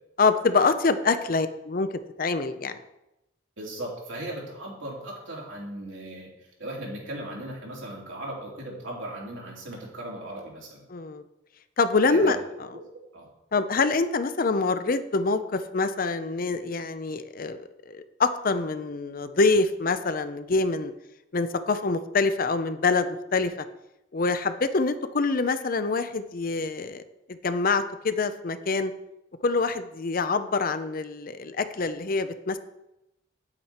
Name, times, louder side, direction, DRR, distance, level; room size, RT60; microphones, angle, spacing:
voice 1, 0.2-1.9 2.2-2.8 10.9-11.2 11.8-12.4 13.5-17.6 17.9-20.9 21.3-23.5 24.1-27.0 27.4-28.9 29.4-32.6, left 3 dB, 45° left, 11 dB, 0.6 m, -25 dB
voice 2, 3.6-6.3 6.6-10.8 12.1-12.4 12.7-12.8 13.1-13.3, right 1 dB, 75° right, -3 dB, 3.4 m, -37 dB
9.6 x 8.8 x 4.3 m, 0.90 s
head